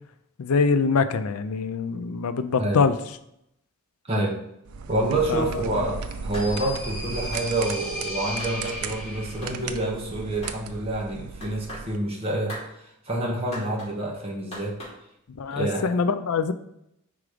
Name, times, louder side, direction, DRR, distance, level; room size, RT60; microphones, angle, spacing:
voice 1, 0.4-2.9 5.3-5.5 15.4-16.5, left 5 dB, 80° left, 11 dB, 0.5 m, -24 dB
voice 2, 4.1-4.4 4.9-14.8 15.5-15.9, right 2 dB, 25° right, -2 dB, 1.1 m, -28 dB
sound 1, 4.7-12.0, right 5 dB, 75° right, 0.5 m, -36 dB
sound 2, 5.9-9.7, left 1 dB, 5° left, 1.8 m, -36 dB
sound 3, 6.3-6.7 7.3-7.5 8.4-8.8 9.4-9.6 10.4-10.6 11.4-11.9 12.5-12.7 13.5-13.9 14.5-15.0, equal, 30° left, 2.4 m, -38 dB
4.9 x 3.9 x 5.0 m, 0.77 s
head